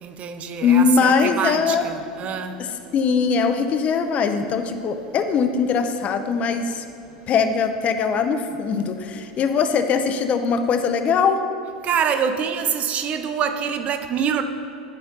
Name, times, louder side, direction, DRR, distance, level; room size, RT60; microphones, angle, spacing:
voice 1, 0.0-2.6 11.8-14.4, right 7 dB, 40° right, 9 dB, 0.6 m, -25 dB
voice 2, 0.6-1.9 2.6-2.7 2.9-6.8 7.3-11.4, left 6 dB, 40° left, 8 dB, 0.6 m, -21 dB
10.5 x 4.2 x 4.0 m, 2.8 s
hypercardioid pair, 85°, 4 cm